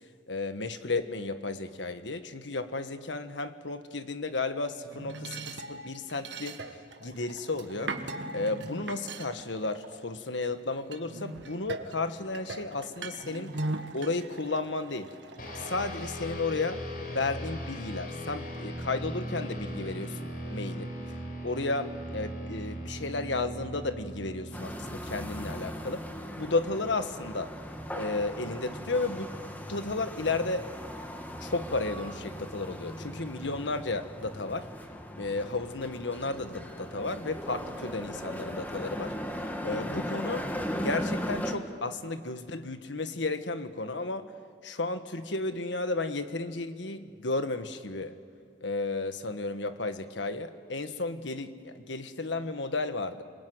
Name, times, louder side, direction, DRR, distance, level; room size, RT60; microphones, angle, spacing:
voice 1, 0.3-6.6 7.0-8.0 8.3-13.5 13.9-15.1 15.6-20.2 20.5-20.9 21.4-26.0 26.4-27.5 27.9-29.3 29.7-30.7 31.4-34.7 35.2-39.1 39.6-40.5 40.8-44.3 44.6-48.1 48.6-53.2, left 3 dB, 85° left, 10 dB, 1.4 m, -33 dB
sound 1, 4.8-10.5 10.9-16.4, right 2 dB, 80° right, 1.7 m, -40 dB
sound 2, 15.4-27.1, equal, 50° left, 4.6 m, -39 dB
sound 3, 24.5-41.5, equal, 10° left, 1.6 m, -38 dB
28.0 x 21.0 x 9.4 m, 2.2 s
head